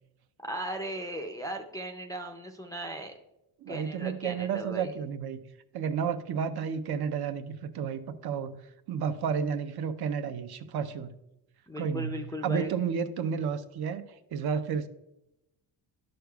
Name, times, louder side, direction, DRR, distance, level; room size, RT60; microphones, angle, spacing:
voice 1, 0.4-3.1 3.7-4.9 11.7-12.7, equal, 10° left, 2 dB, 0.3 m, -37 dB
voice 2, 3.6-5.4 5.7-8.6 8.9-11.1 11.8-14.9, right 7 dB, 60° right, 10 dB, 0.6 m, -32 dB
11.0 x 6.5 x 2.3 m, 0.89 s
cardioid pair, 155°, 43 cm